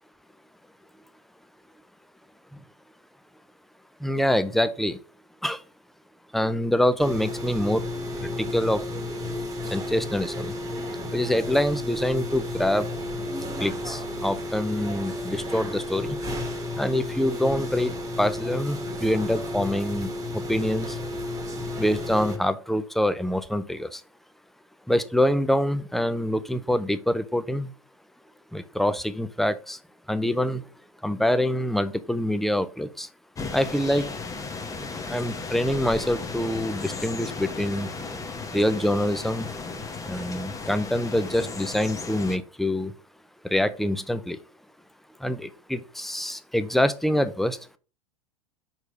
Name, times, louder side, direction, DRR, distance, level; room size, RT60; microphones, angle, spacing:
voice 1, 4.0-5.0 5.4-5.6 6.3-7.8 8.2-8.8 9.7-10.9 11.1-12.9 13.6-16.2 16.8-20.1 20.5-21.0 21.8-24.0 24.9-27.7 28.5-29.8 30.1-30.6 31.0-33.1 33.5-34.1 35.1-37.9 38.5-39.5 40.1-42.9 43.4-44.4 45.2-47.6, left 1 dB, ahead, 13 dB, 0.6 m, -25 dB
sound 1, 7.0-22.4, left 1 dB, 20° right, 1.4 m, -32 dB
sound 2, 33.3-42.4, left 4 dB, 20° left, 1.0 m, -35 dB
5.2 x 4.5 x 5.0 m, 0.37 s
hypercardioid pair, 90°, 18 cm